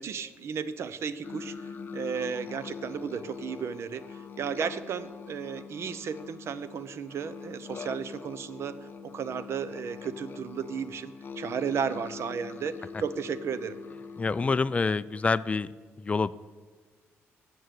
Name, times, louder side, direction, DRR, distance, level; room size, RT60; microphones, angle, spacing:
voice 1, 0.0-8.8 9.0-13.8, right 6 dB, 60° right, 14 dB, 0.7 m, -34 dB
sound 1, 1.2-14.6, left 5 dB, 40° left, 0.8 m, -43 dB
voice 2, 14.2-15.7 16.0-16.3, left 4 dB, 25° left, 17 dB, 0.3 m, -27 dB
12.5 x 7.9 x 6.4 m, 1.4 s
cardioid pair, 100°, 5 cm